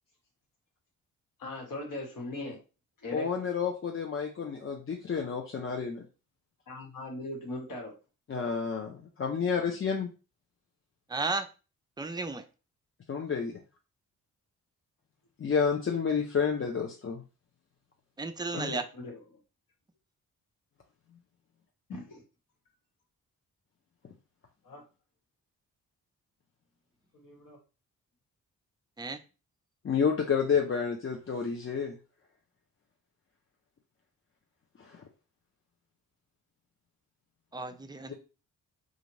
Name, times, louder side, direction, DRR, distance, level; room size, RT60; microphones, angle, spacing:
voice 1, 1.4-2.6 3.0-3.3 6.7-7.9 18.5-19.4 21.9-22.2 24.6-24.8 27.1-27.6, left 2 dB, 60° left, 0 dB, 1.3 m, -39 dB
voice 2, 3.1-6.0 8.3-10.1 13.1-13.6 15.4-17.2 18.6-18.7 29.8-32.0 34.8-35.0 38.1-38.2, left 6 dB, 35° left, 1 dB, 0.6 m, -30 dB
voice 3, 11.1-11.5 12.0-12.4 18.2-18.8 29.0-29.2 37.5-38.1, right 3 dB, 10° right, 7 dB, 0.5 m, -33 dB
2.5 x 2.4 x 3.2 m, 0.32 s
hypercardioid pair, 45°, 37 cm